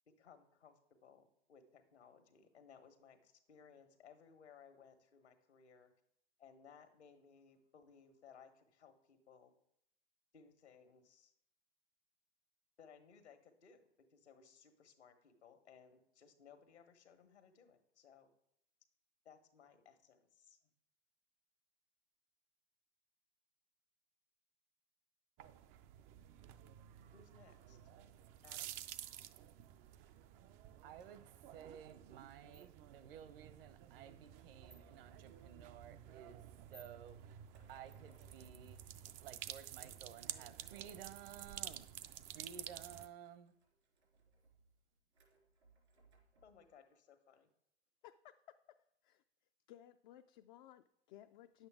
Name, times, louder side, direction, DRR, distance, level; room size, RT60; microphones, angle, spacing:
voice 1, 0.2-5.9 6.4-9.5 10.3-11.3 12.8-13.8 14.1-18.3 19.2-20.6 27.1-27.8 28.4-28.7 46.4-47.5, left 6 dB, 75° left, 1.5 m, -62 dB
sound 1, 25.4-43.1, right 12 dB, 25° right, 0.3 m, -52 dB
voice 2, 30.8-37.2 37.7-38.8 39.2-41.9 42.3-43.5, right 9 dB, 55° right, 0.9 m, -55 dB
sound 2, 31.0-46.7, right 2 dB, 85° right, 3.2 m, -70 dB
voice 3, 48.0-48.8 49.0-49.2 49.7-51.7, left 12 dB, 50° left, 0.4 m, -59 dB
9.9 x 8.0 x 3.6 m
hypercardioid pair, 105°, 34 cm